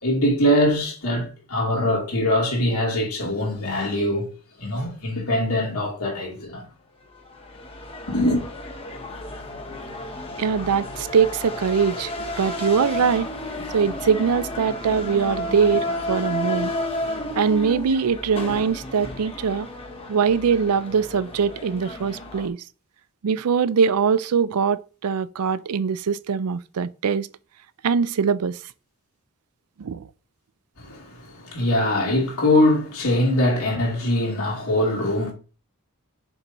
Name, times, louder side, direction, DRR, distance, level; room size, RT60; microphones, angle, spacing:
voice 1, 0.0-4.3 4.6-6.7 8.1-8.4 30.8-35.3, left 1 dB, 80° left, 2.9 m, -22 dB
sound 1, 7.2-22.5, left 1 dB, 25° left, 1.1 m, -32 dB
voice 2, 10.4-13.3 13.7-16.7 17.4-19.7 20.1-22.6 23.2-27.3 27.8-28.6 29.8-30.1, right 6 dB, 90° right, 0.4 m, -22 dB
7.0 x 5.3 x 2.9 m
head